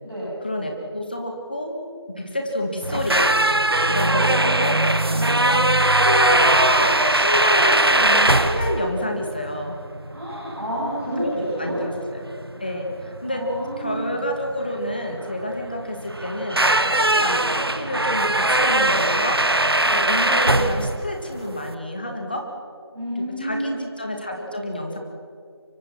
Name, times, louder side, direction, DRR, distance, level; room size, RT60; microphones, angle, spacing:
voice 1, 0.4-1.8 2.1-3.3 3.9-4.8 5.1-9.8 11.2-12.3 12.6-13.5 13.8-19.4 19.9-22.5 23.1-25.0, left 1 dB, 20° left, 3 dB, 2.0 m, -28 dB
sound 1, 2.8-21.7, right 1 dB, 60° right, 1.2 m, -21 dB
voice 2, 3.7-4.7 5.1-5.4 10.0-11.8 13.3-14.1 19.8-20.1 22.9-23.8, equal, ahead, -23 dB, 1.1 m, -30 dB
25.0 x 24.0 x 6.1 m, 2.2 s
figure-of-eight pair, 175°, 14 cm